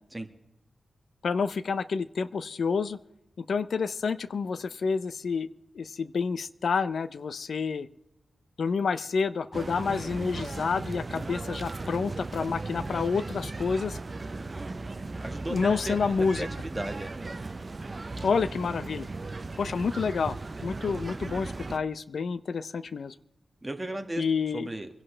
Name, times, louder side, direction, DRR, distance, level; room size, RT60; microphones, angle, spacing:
voice 1, 1.2-3.0 3.4-5.5 5.7-7.9 8.6-14.0 15.5-16.5 18.2-19.1 19.6-23.1 24.2-24.7, left 5 dB, 70° left, 14 dB, 0.5 m, -29 dB
sound 1, 9.5-21.8, right 3 dB, 35° right, 0.7 m, -37 dB
voice 2, 15.2-17.1 23.6-24.2 24.5-24.9, right 1 dB, 15° right, 5 dB, 1.7 m, -35 dB
25.5 x 11.0 x 3.3 m, 0.89 s
wide cardioid pair, 90°, 0 cm